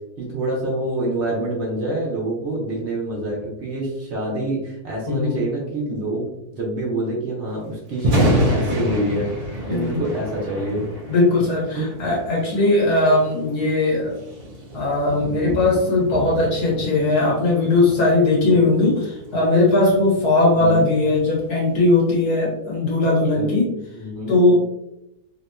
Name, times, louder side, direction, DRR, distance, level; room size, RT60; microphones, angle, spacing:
voice 1, 0.2-6.3 6.5-10.9 11.8-11.9 15.2-15.5 18.4-18.7 20.5-20.9 23.3-23.5 23.9-24.3, right 1 dB, 50° right, -3 dB, 1.0 m, -26 dB
voice 2, 5.1-5.4 9.7-10.0 11.1-14.1 14.7-23.7 24.3-24.5, left 2 dB, 80° left, -4 dB, 1.7 m, -19 dB
Thunder, 7.9-22.0, equal, 70° right, 0.3 m, -29 dB
3.5 x 2.7 x 2.2 m, 0.86 s
omnidirectional pair, 1.6 m